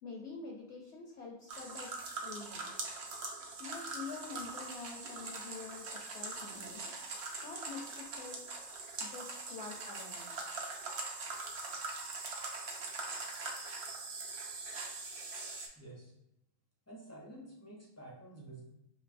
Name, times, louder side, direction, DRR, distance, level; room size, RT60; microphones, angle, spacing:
voice 1, 0.0-1.9 2.2-2.7 3.6-6.8 7.4-8.4 9.0-10.3, left 4 dB, 65° left, 0 dB, 0.7 m, -46 dB
sound 1, 1.5-15.7, right 3 dB, 60° right, 0.8 m, -42 dB
voice 2, 15.8-16.1 16.9-18.6, right 1 dB, 20° left, -4 dB, 0.4 m, -50 dB
5.3 x 2.7 x 2.5 m, 0.84 s
omnidirectional pair, 1.5 m